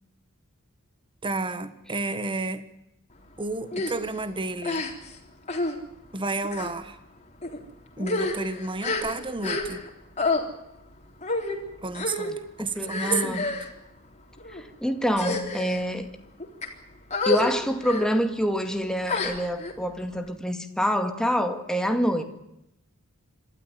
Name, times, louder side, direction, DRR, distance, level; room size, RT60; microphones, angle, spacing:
voice 1, 1.2-2.6 3.4-4.9 6.1-7.0 8.0-9.8 11.8-13.4, right 3 dB, 25° right, 1.5 m, -31 dB
sound 1, 3.7-3.9 4.6-5.2 5.5-5.8 6.4-6.7 7.4-7.6 8.0-9.9 10.2-10.4 11.2-11.6 11.9-12.3 12.9-13.7 14.4-14.6 15.1-15.8 16.4-16.7 17.1-17.5 17.8-18.1 19.1-19.7, left 3 dB, 30° left, 3.8 m, -28 dB
voice 2, 12.6-13.5 14.5-16.1 17.3-22.2, equal, 5° left, 2.2 m, -26 dB
26.5 x 13.0 x 9.3 m
head